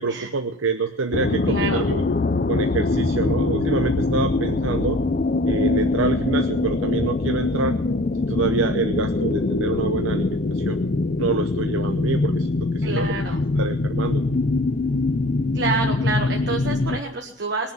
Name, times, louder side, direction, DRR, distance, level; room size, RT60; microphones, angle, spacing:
voice 1, 0.0-2.0 2.5-5.0 5.5-7.8 8.3-10.8 11.2-12.5 12.7-13.1 13.5-14.2, right 4 dB, 80° right, 7 dB, 0.8 m, -26 dB
sound 1, 1.1-17.0, left 3 dB, 40° left, 0.5 m, -23 dB
voice 2, 1.5-1.8 12.8-13.4 15.5-17.7, right 4 dB, 55° right, 1 dB, 1.4 m, -28 dB
20.5 x 7.2 x 7.4 m, 0.72 s
head